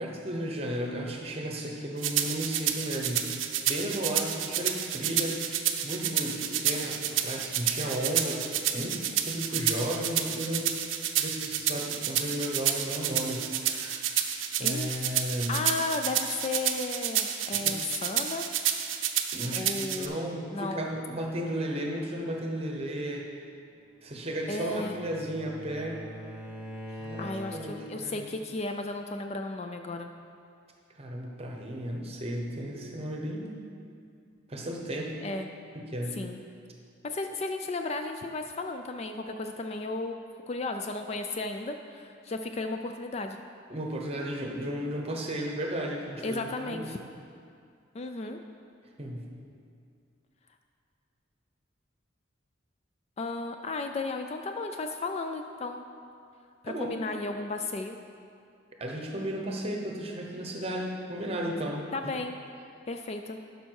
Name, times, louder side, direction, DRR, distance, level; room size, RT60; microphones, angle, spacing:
voice 1, 0.0-3.3 3.6-5.4 5.8-8.5 8.7-10.7 11.2-14.1 14.6-15.6 17.6-17.8 19.3-23.2 24.0-26.0 27.0-28.2 31.0-33.5 34.5-35.2 35.7-36.2 43.7-46.9 49.0-49.3 56.7-56.9 58.8-62.1, equal, 30° right, 1 dB, 1.0 m, -34 dB
sound 1, 2.0-20.1, right 10 dB, 70° right, 0.6 m, -30 dB
voice 2, 14.6-15.1 15.5-18.5 19.5-20.2 20.5-20.9 24.5-25.0 26.9-30.1 35.2-35.5 36.2-36.4 37.0-40.2 40.5-43.4 46.2-47.0 47.9-48.4 53.2-55.9 56.6-58.0 61.9-62.4 62.9-63.4, left 3 dB, 30° left, 5 dB, 0.3 m, -34 dB
Bowed string instrument, 24.0-27.9, left 1 dB, 5° right, 1.5 m, -43 dB
11.5 x 5.4 x 4.7 m, 2.4 s
head